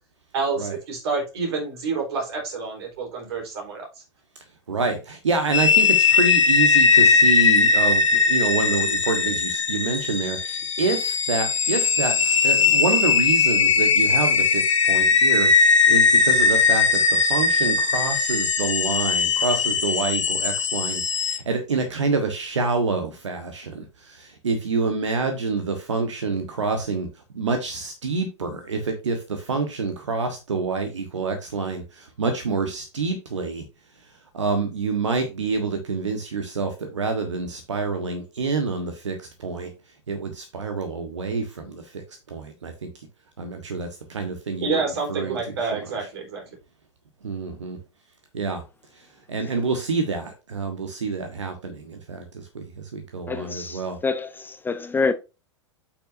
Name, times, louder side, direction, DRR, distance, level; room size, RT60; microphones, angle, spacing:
voice 1, 0.3-3.9 44.6-46.4, right 4 dB, 60° right, 3.9 m, -28 dB
voice 2, 4.7-14.6 14.9-17.0 17.2-27.1 27.3-33.6 34.3-39.1 39.4-39.7 40.1-41.8 42.3-42.9 43.4-46.1 47.2-47.8 48.3-48.6 49.3-52.2 52.5-52.6 52.9-54.0, right 4 dB, 75° right, 1.3 m, -27 dB
sound 1, 5.5-21.4, left 5 dB, 80° left, 1.0 m, -19 dB
voice 3, 53.3-55.1, left 4 dB, 15° left, 0.6 m, -27 dB
8.4 x 6.0 x 2.7 m
figure-of-eight pair, 90°, 15 cm